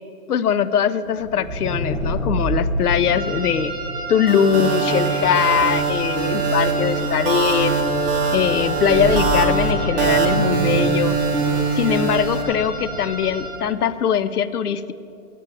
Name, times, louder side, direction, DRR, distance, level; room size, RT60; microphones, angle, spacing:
voice 1, 0.3-3.7 4.1-7.7 8.3-11.2 11.8-14.9, left 8 dB, 80° left, 13 dB, 0.7 m, -21 dB
sound 1, 1.1-13.7, equal, 10° left, 1.5 m, -30 dB
sound 2, 3.0-13.5, right 4 dB, 10° right, 3.2 m, -32 dB
sound 3, 4.3-12.4, right 4 dB, 35° right, 1.8 m, -22 dB
9.1 x 8.4 x 7.4 m, 2.7 s
hypercardioid pair, 150°, 45 cm